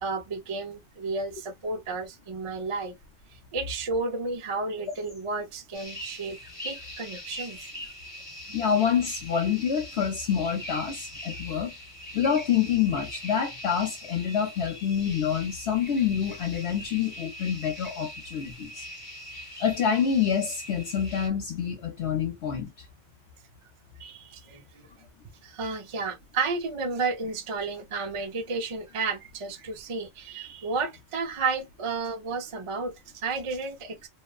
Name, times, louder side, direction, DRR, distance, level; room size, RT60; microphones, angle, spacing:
voice 1, 0.0-2.9 3.3-6.4 6.6-7.7 8.5-8.6 24.0-24.9 25.4-34.1, right 4 dB, 45° right, 0.4 m, -32 dB
sound 1, 4.9-5.2 5.8-8.5 9.2-9.7 10.0-11.7 12.0-12.6 12.9-13.4 14.2-15.3 15.7-17.0 17.6-18.0 18.9-19.0 19.3-20.9, equal, 15° left, 0.4 m, -45 dB
sound 2, 5.7-21.3, equal, 30° left, 0.9 m, -43 dB
voice 2, 8.5-11.7 12.1-18.8 19.6-22.7, left 8 dB, 65° left, 0.9 m, -27 dB
3.0 x 2.1 x 2.2 m
omnidirectional pair, 1.2 m